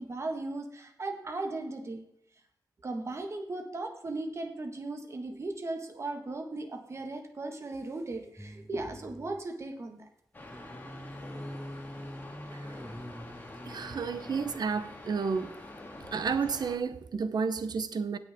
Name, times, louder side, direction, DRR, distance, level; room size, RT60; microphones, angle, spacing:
voice 1, 0.0-2.0 2.8-10.0, right 2 dB, 40° right, 1.5 m, -37 dB
sound 1, 8.4-9.4 10.4-15.0 15.4-15.5, equal, 5° left, 0.7 m, -45 dB
sound 2, 10.3-16.8, left 1 dB, 25° left, 1.8 m, -46 dB
voice 2, 13.6-15.6 16.1-18.2, right 5 dB, 75° right, 0.8 m, -31 dB
17.5 x 6.3 x 3.6 m
wide cardioid pair, 155°, 7 cm